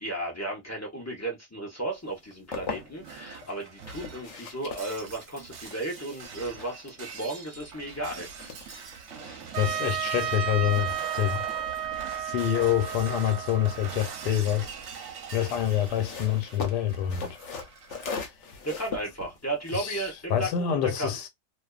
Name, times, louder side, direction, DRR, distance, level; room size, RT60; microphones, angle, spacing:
voice 1, 0.0-8.3 18.6-21.2, right 2 dB, 20° left, 0.5 m, -34 dB
sound 1, 2.1-3.2 3.8-9.2 9.5-14.1 15.1-20.7, left 5 dB, 55° left, 0.9 m, -42 dB
Shatter, 2.7-18.3, right 6 dB, 55° right, 0.9 m, -43 dB
voice 2, 9.2-11.4 12.2-14.7 15.0-17.6 18.2-18.5 19.7-21.3, left 11 dB, 85° left, 1.2 m, -27 dB
Trumpet, 9.5-14.4, right 10 dB, 90° right, 1.2 m, -33 dB
2.5 x 2.5 x 2.3 m
omnidirectional pair, 1.8 m